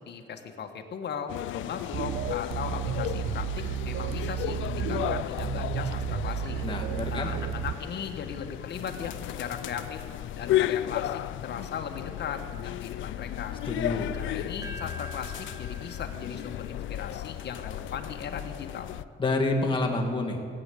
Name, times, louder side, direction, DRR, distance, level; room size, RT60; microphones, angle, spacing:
voice 1, 0.0-6.6 7.1-10.1 10.3-13.6 13.9-18.9, left 7 dB, 60° left, 5 dB, 1.5 m, -38 dB
sound 1, 1.3-19.0, left 13 dB, 90° left, 0.4 m, -34 dB
sound 2, 1.9-7.7, right 12 dB, 60° right, 0.4 m, -32 dB
voice 2, 6.6-7.3 13.7-14.1 19.2-20.4, left 2 dB, 25° left, 0 dB, 2.3 m, -28 dB
sound 3, 14.1-18.0, equal, 15° right, 2.2 m, -46 dB
18.0 x 8.8 x 8.5 m, 2.4 s
cardioid pair, 115°, 19 cm